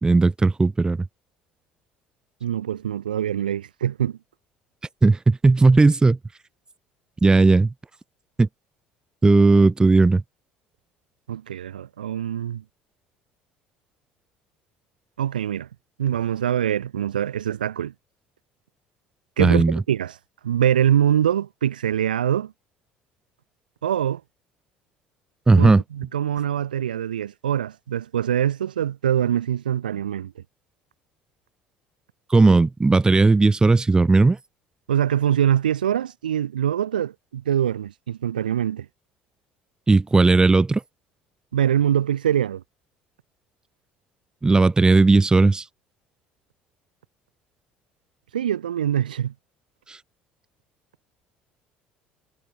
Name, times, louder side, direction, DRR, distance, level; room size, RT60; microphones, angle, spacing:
voice 1, 0.0-1.0 5.0-6.2 7.2-7.7 8.4-8.5 9.2-10.2 19.4-19.8 25.5-25.8 32.3-34.4 39.9-40.8 44.4-45.6 49.9-50.0, right 3 dB, 15° right, 0.4 m, -16 dB
voice 2, 2.4-4.2 11.3-12.6 15.2-15.7 16.0-17.9 19.4-20.2 20.4-22.5 23.8-24.2 25.6-30.3 34.9-38.9 41.5-42.6 48.3-49.3, right 10 dB, 90° right, 0.6 m, -24 dB
hypercardioid pair, 60°, 5 cm